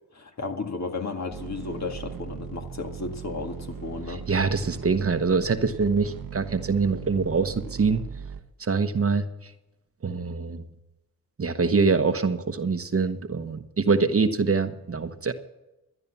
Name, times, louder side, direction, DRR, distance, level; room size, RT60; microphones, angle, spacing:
voice 1, 0.1-4.2, left 3 dB, 45° left, 4 dB, 2.0 m, -33 dB
sound 1, 1.3-8.4, right 8 dB, 65° right, 1.1 m, -39 dB
voice 2, 4.1-8.0 8.6-9.5 10.0-10.6 11.4-15.3, right 4 dB, 40° right, 9 dB, 1.1 m, -24 dB
12.5 x 9.9 x 7.1 m, 0.99 s
cardioid pair, 50°, 37 cm